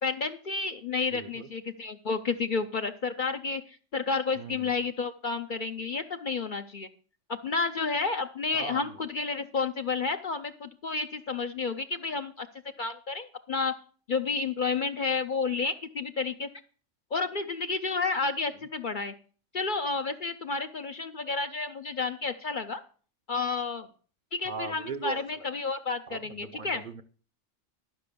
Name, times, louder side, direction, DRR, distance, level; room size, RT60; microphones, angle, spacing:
voice 1, 0.0-6.9 7.4-12.5 12.8-13.7 14.1-16.5 17.1-19.1 19.5-22.8 23.3-23.9 24.3-26.8, left 4 dB, 50° left, 0.7 m, -31 dB
voice 2, 1.1-1.5 4.4-4.9 8.5-9.0 24.5-25.5 26.1-27.0, right 4 dB, 45° right, 0.7 m, -39 dB
12.5 x 6.0 x 6.8 m
omnidirectional pair, 1.3 m